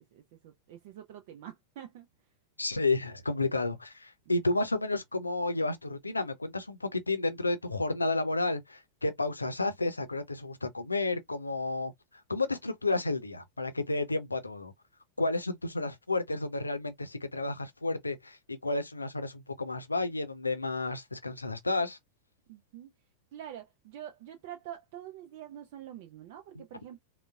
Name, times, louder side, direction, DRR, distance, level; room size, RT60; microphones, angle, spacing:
voice 1, 0.0-2.1 4.3-4.4 22.5-22.9 23.3-27.0, right 11 dB, 50° right, 0.5 m, -46 dB
voice 2, 2.6-11.9 12.3-14.7 15.2-22.0 26.6-26.7, left 2 dB, 80° left, 0.5 m, -31 dB
3.9 x 2.1 x 2.3 m
figure-of-eight pair, 90°, 0 cm